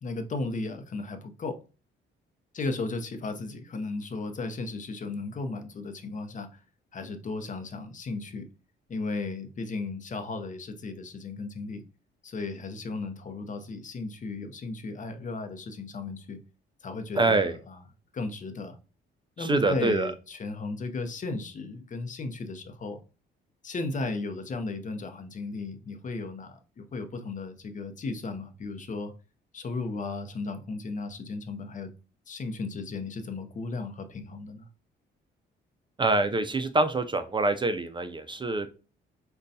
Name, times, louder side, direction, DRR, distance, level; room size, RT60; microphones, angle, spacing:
voice 1, 0.0-1.6 2.5-6.6 6.9-8.5 8.9-11.8 12.2-16.4 16.8-17.8 18.1-18.8 19.4-23.0 23.6-29.1 29.5-31.9 32.3-34.7, left 3 dB, 40° left, 0.7 m, -35 dB
voice 2, 17.2-17.6 19.4-20.1 36.0-38.7, right 2 dB, 25° right, 0.4 m, -25 dB
5.0 x 2.3 x 2.7 m
cardioid pair, 90°, 20 cm